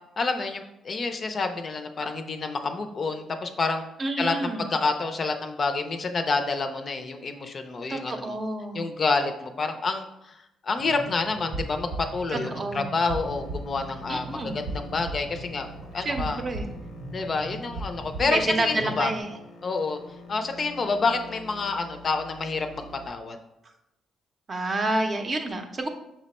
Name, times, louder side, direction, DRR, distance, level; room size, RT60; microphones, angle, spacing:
voice 1, 0.2-3.8 4.2-8.4 8.7-10.3 10.6-15.7 15.9-16.4 17.1-19.1 19.6-20.0 20.3-23.4, left 3 dB, 45° left, 6 dB, 0.4 m, -28 dB
voice 2, 4.0-4.6 7.9-8.9 12.3-12.9 14.1-14.5 16.0-16.7 18.2-19.3 24.5-25.9, right 2 dB, 35° right, 5 dB, 0.6 m, -29 dB
sound 1, 10.8-19.2, right 2 dB, 75° right, 0.8 m, -38 dB
sound 2, 13.1-23.1, left 1 dB, 85° left, 0.6 m, -45 dB
5.7 x 2.1 x 4.1 m, 0.89 s
cardioid pair, 90°, 0 cm